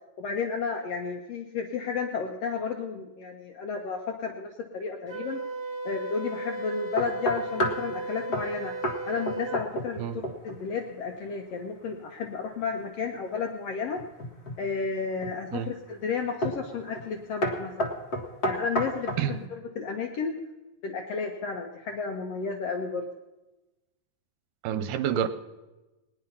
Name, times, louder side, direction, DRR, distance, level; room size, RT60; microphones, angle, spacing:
voice 1, 0.2-5.4 5.8-8.7 9.1-14.0 14.6-18.0 18.4-20.4 20.8-23.1, left 5 dB, 85° left, 4 dB, 1.4 m, -32 dB
Wind instrument woodwind instrument, 5.1-9.6, right 2 dB, 50° right, 1.2 m, -36 dB
sound 1, 7.0-7.9 8.3-8.5 8.8-9.0 9.3-10.0 10.2-10.6 14.0-14.6 15.2-15.6 16.4-16.7 16.9-17.1 17.4-19.3, equal, 70° left, 0.9 m, -30 dB
voice 2, 24.6-25.3, right 9 dB, 80° right, 12 dB, 2.2 m, -28 dB
19.5 x 10.0 x 5.5 m, 1.1 s
omnidirectional pair, 4.1 m